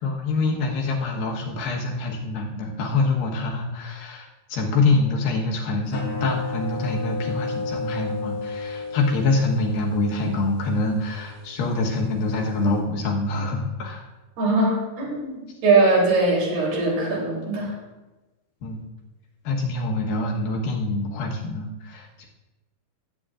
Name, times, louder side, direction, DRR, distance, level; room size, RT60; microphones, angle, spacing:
voice 1, 0.0-14.1 17.6-17.7 18.6-18.9 19.4-22.3, left 3 dB, 70° left, 0 dB, 3.0 m, -25 dB
sound 1, 5.9-12.8, left 3 dB, 90° left, 5.0 m, -34 dB
voice 2, 14.4-17.7, right 3 dB, 85° right, -4 dB, 5.2 m, -21 dB
19.0 x 8.6 x 2.5 m, 1.1 s
omnidirectional pair, 4.5 m